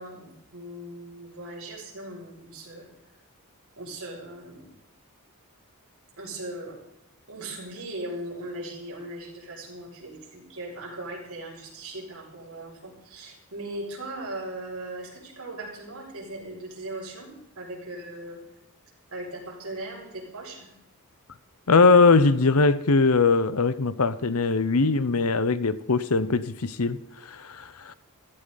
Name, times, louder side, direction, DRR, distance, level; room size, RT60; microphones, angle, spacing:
voice 1, 0.0-2.8 3.8-4.7 6.2-6.8 7.3-18.4 19.1-20.7, right 1 dB, 70° right, 6.8 m, -38 dB
voice 2, 21.7-27.9, left 4 dB, 75° left, 0.9 m, -21 dB
15.5 x 15.0 x 4.1 m
head